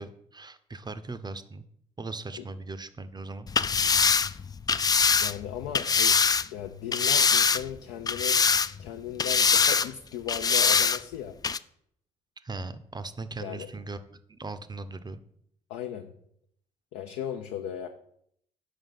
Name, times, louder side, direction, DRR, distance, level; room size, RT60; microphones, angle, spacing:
voice 1, 0.0-1.6 2.0-3.5 12.4-15.2, right 3 dB, 20° right, 12 dB, 0.6 m, -39 dB
sound 1, 3.5-6.5 6.9-7.8 8.1-8.9 9.2-9.9 10.3-11.0 11.4-11.6, left 5 dB, 20° left, 0.3 m, -23 dB
voice 2, 5.2-6.2 6.5-8.4 8.8-11.4 13.4-13.7 15.7-16.1 16.9-17.9, left 9 dB, 70° left, 4 dB, 0.6 m, -36 dB
5.9 x 5.2 x 5.6 m, 0.70 s
figure-of-eight pair, 45°, 19 cm